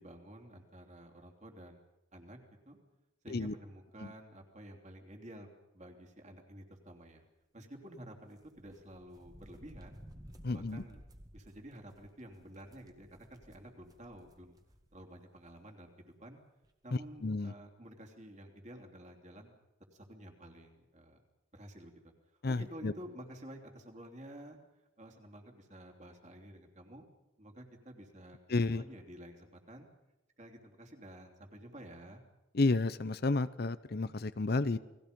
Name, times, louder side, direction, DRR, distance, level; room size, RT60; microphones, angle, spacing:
voice 1, 0.0-1.8 2.1-2.4 2.6-2.8 3.2-5.5 5.7-7.2 7.5-10.0 10.5-11.0 11.3-14.6 14.9-16.4 16.8-19.5 19.9-21.2 21.5-22.0 22.3-24.6 25.0-27.0 27.4-29.9 30.4-32.2, right 1 dB, 35° right, 3 dB, 3.2 m, -51 dB
sound 1, 8.4-15.1 15.4-15.5 16.6-16.7 17.0-17.3, equal, 20° right, 1.8 m, -56 dB
voice 2, 10.4-10.8 17.2-17.5 22.4-22.9 28.5-28.8 32.5-34.8, left 3 dB, 50° left, 15 dB, 0.7 m, -31 dB
29.5 x 20.5 x 5.3 m, 0.99 s
head